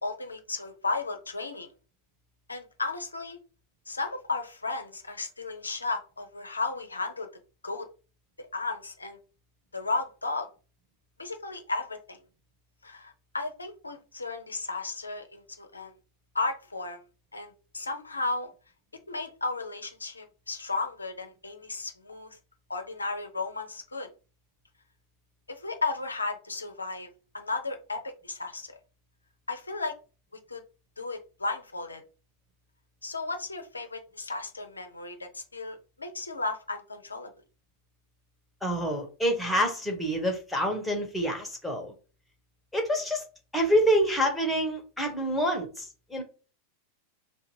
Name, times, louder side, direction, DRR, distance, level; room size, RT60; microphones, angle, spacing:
voice 1, 0.0-1.7 2.5-3.4 3.9-7.3 7.6-7.9 8.4-9.2 9.7-10.5 11.2-12.2 12.8-15.9 16.3-17.0 17.3-18.5 19.1-22.4 22.7-24.1 25.5-27.1 27.3-28.7 29.5-29.9 30.5-30.6 31.0-32.0 33.0-37.3, left 3 dB, 80° left, 0.7 m, -34 dB
voice 2, 38.6-41.9 42.7-43.2 43.5-46.2, equal, 5° left, 1.3 m, -27 dB
3.4 x 2.8 x 4.6 m
figure-of-eight pair, 90°, 0 cm